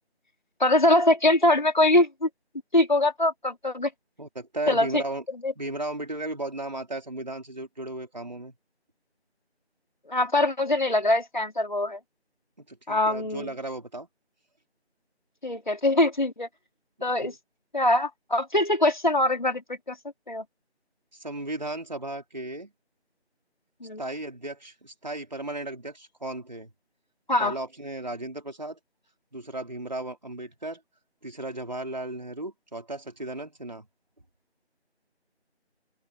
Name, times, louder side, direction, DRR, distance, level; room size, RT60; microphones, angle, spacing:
voice 1, 0.6-2.3 2.7-3.9 4.7-5.0 5.4-5.5 10.1-12.0 12.9-13.5 15.4-16.5 17.0-17.3 17.7-20.0 20.3-20.4 23.8-24.0 27.3-27.6, left 1 dB, 45° left, 4.7 m, -23 dB
voice 2, 4.2-5.2 5.6-8.5 12.6-14.1 17.2-17.3 21.1-22.7 24.0-26.7 27.4-28.8 29.3-30.8 31.2-33.9, right 2 dB, 40° right, 4.5 m, -35 dB
open air
figure-of-eight pair, 175°, 33 cm